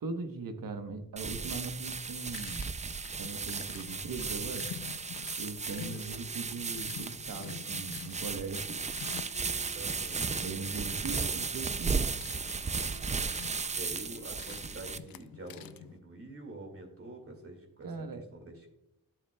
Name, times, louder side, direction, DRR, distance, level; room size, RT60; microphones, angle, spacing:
voice 1, 0.0-2.7 3.1-4.7 5.4-8.8 10.4-12.0 17.8-18.2, right 4 dB, 70° right, 7 dB, 1.1 m, -40 dB
sound 1, 1.2-15.0, right 5 dB, 20° right, 0.4 m, -35 dB
sound 2, 1.7-16.0, left 11 dB, 75° left, 0.5 m, -49 dB
sound 3, 3.8-14.8, equal, 30° left, 0.9 m, -57 dB
voice 2, 9.7-10.3 11.0-11.2 13.0-17.9 18.1-18.7, right 2 dB, 40° right, 3 dB, 2.1 m, -47 dB
11.0 x 7.1 x 2.2 m, 0.86 s
cardioid pair, 80°, 35 cm